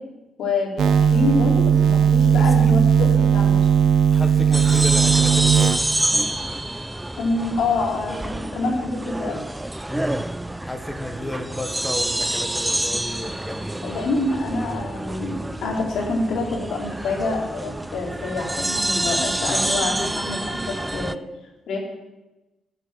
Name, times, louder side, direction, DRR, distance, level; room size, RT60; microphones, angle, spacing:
voice 1, 0.4-3.9 7.2-9.4 13.8-21.2 21.7-21.8, left 3 dB, 80° left, -1 dB, 3.6 m, -26 dB
sound 1, 0.8-6.2, right 7 dB, 70° right, 1.1 m, -17 dB
voice 2, 2.4-2.7 4.1-5.8 9.9-10.2 10.6-13.8 19.5-19.7, left 1 dB, 10° left, 4 dB, 1.4 m, -32 dB
sound 2, 4.5-21.2, right 1 dB, 10° right, 0.5 m, -27 dB
12.5 x 8.0 x 7.5 m, 1.0 s
cardioid pair, 95°, 0 cm